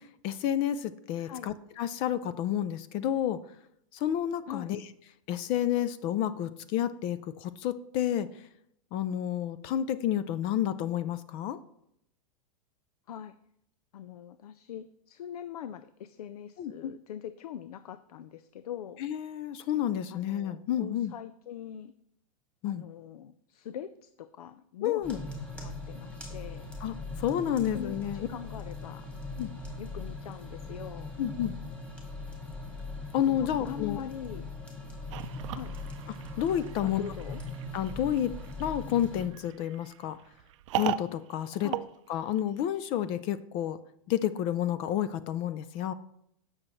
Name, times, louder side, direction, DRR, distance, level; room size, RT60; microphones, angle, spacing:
voice 1, 0.2-3.4 3.9-4.8 5.3-8.3 8.9-11.6 16.6-16.9 19.0-21.1 22.6-22.8 24.8-25.2 26.8-28.3 29.4-29.5 31.2-31.5 33.1-34.0 36.4-37.0 37.7-38.3 38.6-40.2 40.7-41.7 42.1-43.8 44.1-45.9, left 10 dB, 30° left, 15 dB, 0.3 m, -30 dB
voice 2, 1.2-1.5 4.5-4.7 13.1-13.3 13.9-19.0 20.1-21.9 22.6-26.7 27.6-29.1 29.8-31.1 33.3-34.5 35.5-35.8 36.8-37.4 41.6-41.9, left 9 dB, 85° left, 13 dB, 0.5 m, -43 dB
sound 1, 25.0-39.3, left 2 dB, 5° left, 1.9 m, -40 dB
sound 2, 35.1-42.8, right 14 dB, 55° right, 0.5 m, -39 dB
17.0 x 6.4 x 3.1 m, 0.74 s
supercardioid pair, 155°, 19 cm